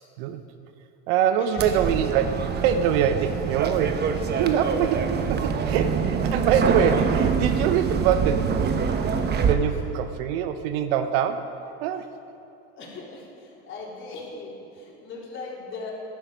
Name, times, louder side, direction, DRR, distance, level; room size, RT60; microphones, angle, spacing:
voice 1, 1.1-8.7 9.4-11.6 11.8-12.1, right 8 dB, 65° right, 9 dB, 0.9 m, -24 dB
sound 1, 1.6-9.6, right 6 dB, 30° right, 1.2 m, -25 dB
voice 2, 12.7-15.9, left 3 dB, 40° left, -4 dB, 4.1 m, -39 dB
14.5 x 12.0 x 5.2 m, 2.7 s
hypercardioid pair, 100°, 32 cm